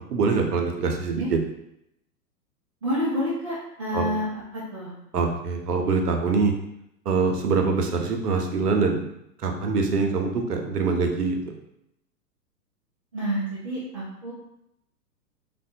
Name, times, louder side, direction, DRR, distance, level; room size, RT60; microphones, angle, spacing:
voice 1, 0.1-1.4 3.9-4.1 5.1-6.5 7.1-9.1 9.4-11.4, right 4 dB, 70° right, 3 dB, 0.7 m, -24 dB
voice 2, 2.8-4.2 4.5-4.9 13.1-14.3, equal, 25° right, -10 dB, 0.3 m, -28 dB
3.3 x 2.2 x 2.6 m, 0.79 s
figure-of-eight pair, 110°, 49 cm